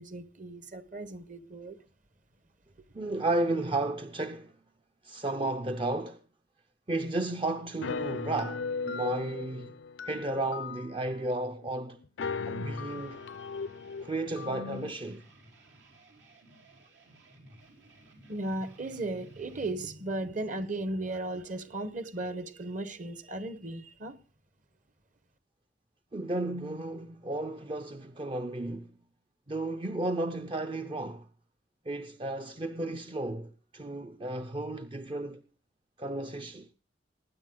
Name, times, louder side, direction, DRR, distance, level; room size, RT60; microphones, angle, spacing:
voice 1, 0.0-1.8 18.3-24.2, right 2 dB, 45° right, 1.1 m, -36 dB
voice 2, 2.9-4.5 5.0-6.2 6.9-9.8 10.0-12.0 12.4-13.2 14.0-15.2 26.1-28.9 29.5-31.3 31.9-35.4 36.0-36.7, right 2 dB, 30° right, 0.6 m, -33 dB
sound 1, 7.8-11.2 11.6-11.7 12.0-14.9, left 5 dB, 90° left, 0.6 m, -37 dB
sound 2, 12.9-19.7, right 2 dB, 90° right, 4.9 m, -57 dB
20.0 x 9.6 x 3.8 m
head